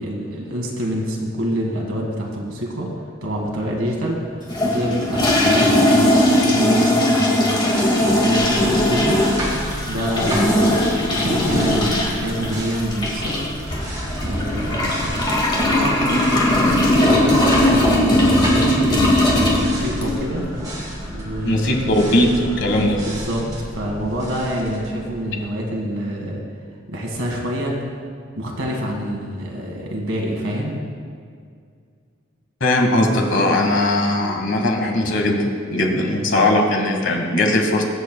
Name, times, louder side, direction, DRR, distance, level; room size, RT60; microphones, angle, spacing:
voice 1, 0.0-2.9 3.2-9.2 9.8-13.4 14.2-19.1 19.5-20.5 21.1-22.0 23.0-26.4 26.9-27.8 28.4-30.8, equal, 75° right, 0 dB, 1.9 m, -26 dB
sound 1, 4.5-20.4, left 1 dB, 25° left, 2.0 m, -19 dB
sound 2, 7.7-25.5, equal, 20° right, 2.1 m, -32 dB
voice 2, 21.4-23.1 32.6-37.8, left 1 dB, 65° left, 2 dB, 1.5 m, -19 dB
21.5 x 7.6 x 2.3 m, 2.2 s
head